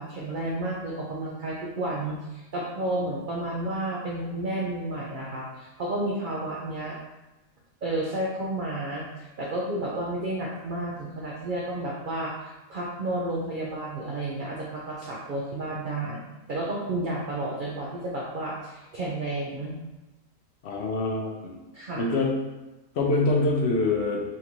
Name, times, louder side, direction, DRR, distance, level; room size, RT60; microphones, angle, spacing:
voice 1, 0.0-7.0 7.8-19.8 21.7-22.1, right 1 dB, 80° right, -4 dB, 0.4 m, -31 dB
voice 2, 20.6-21.6 22.0-22.3 23.0-24.2, left 2 dB, 60° left, -1 dB, 0.7 m, -25 dB
4.1 x 2.6 x 2.9 m, 1.0 s
omnidirectional pair, 1.6 m